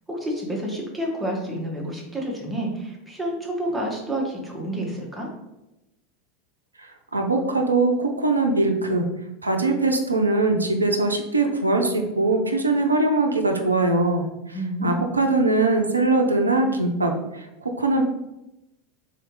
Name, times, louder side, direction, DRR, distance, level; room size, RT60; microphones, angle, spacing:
voice 1, 0.1-5.3 14.5-15.1, right 1 dB, 5° right, -3 dB, 1.2 m, -29 dB
voice 2, 6.8-9.1 9.4-14.6 14.8-17.5 17.8-18.0, right 2 dB, 90° right, 4 dB, 0.5 m, -21 dB
3.8 x 3.2 x 3.1 m, 0.94 s
figure-of-eight pair, 85°, 0 cm